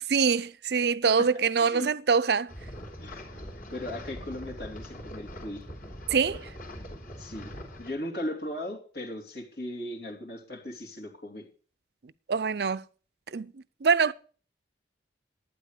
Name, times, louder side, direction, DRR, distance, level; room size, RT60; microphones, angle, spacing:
voice 1, 0.1-2.5 6.1-6.4 12.3-12.8 13.3-13.5 13.8-14.1, right 5 dB, 65° right, 0.5 m, -24 dB
voice 2, 1.2-1.9 3.0-3.2 3.7-5.6 7.2-7.5 7.8-11.5, left 1 dB, 65° left, 3.3 m, -37 dB
sound 1, 2.5-7.9, equal, 50° left, 3.3 m, -42 dB
12.0 x 9.4 x 6.6 m
head